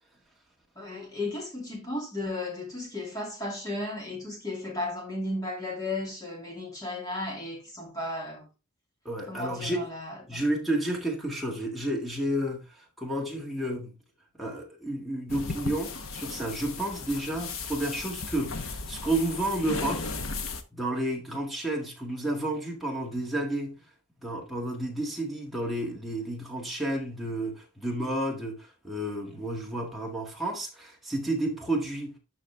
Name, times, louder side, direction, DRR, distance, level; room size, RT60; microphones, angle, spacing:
voice 1, 0.8-8.5 9.3-10.4, left 2 dB, 15° left, 2.6 m, -34 dB
voice 2, 9.1-9.8 10.3-12.7 13.0-13.9 14.4-20.2 20.7-23.7 24.2-32.2, right 1 dB, ahead, 1.8 m, -31 dB
sound 1, 15.3-20.6, left 4 dB, 70° left, 1.0 m, -36 dB
11.5 x 4.2 x 3.4 m
head